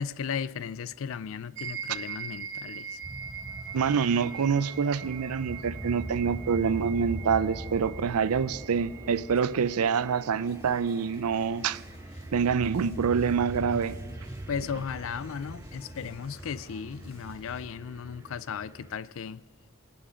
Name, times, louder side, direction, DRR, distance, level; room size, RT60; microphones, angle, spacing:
voice 1, 0.0-3.0 14.5-19.4, left 7 dB, 60° left, 0.4 m, -36 dB
sound 1, 1.6-10.3, right 7 dB, 55° right, 1.0 m, -42 dB
sound 2, 3.0-19.0, right 2 dB, 10° right, 0.3 m, -42 dB
voice 2, 3.7-11.8 12.3-14.0, right 6 dB, 85° right, 0.5 m, -26 dB
sound 3, 10.4-17.7, equal, 25° left, 3.7 m, -51 dB
24.5 x 8.9 x 5.1 m
head